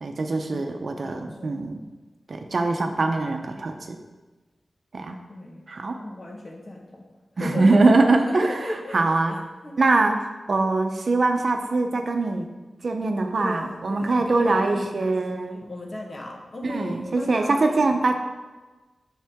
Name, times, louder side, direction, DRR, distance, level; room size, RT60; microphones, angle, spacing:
voice 1, 0.0-1.8 2.3-4.0 4.9-5.2 5.7-6.0 7.4-8.5 8.9-9.4 9.8-12.5 12.8-15.6 16.6-18.2, right 3 dB, 65° right, 5 dB, 0.7 m, -22 dB
voice 2, 0.5-1.6 5.3-5.6 6.0-7.0 7.4-9.8 13.4-17.9, left 1 dB, 50° left, 0 dB, 1.3 m, -36 dB
7.5 x 5.6 x 3.6 m, 1.2 s
wide cardioid pair, 70°, 0 cm